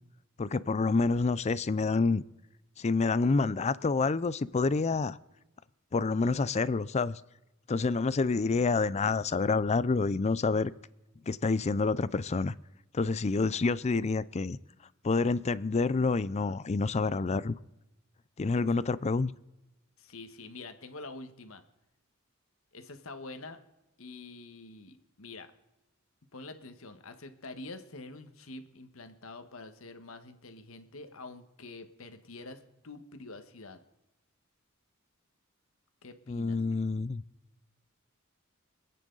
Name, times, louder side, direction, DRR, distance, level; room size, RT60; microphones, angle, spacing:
voice 1, 0.4-2.2 2.8-5.2 5.9-7.2 7.7-10.7 11.3-12.5 12.9-14.6 15.0-17.6 18.4-19.3 36.3-37.2, left 4 dB, 30° left, 18 dB, 0.4 m, -28 dB
voice 2, 20.0-21.6 22.7-23.6 24.0-25.5 26.3-33.8 36.0-36.6, left 3 dB, 70° left, 8 dB, 1.4 m, -46 dB
26.0 x 9.2 x 3.9 m, 0.94 s
head